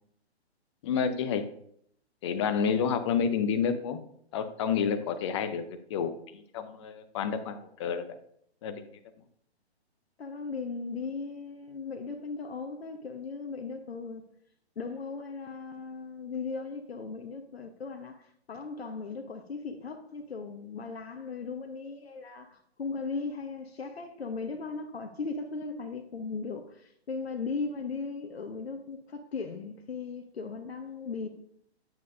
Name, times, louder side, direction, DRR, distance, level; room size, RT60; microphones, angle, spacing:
voice 1, 0.8-1.4 2.2-4.0 4.3-8.0 8.6-8.9, left 6 dB, 25° left, 0.7 m, -29 dB
voice 2, 10.2-14.2 14.8-31.3, left 4 dB, 65° left, 1.0 m, -37 dB
9.1 x 7.3 x 2.6 m
figure-of-eight pair, 125°, 33 cm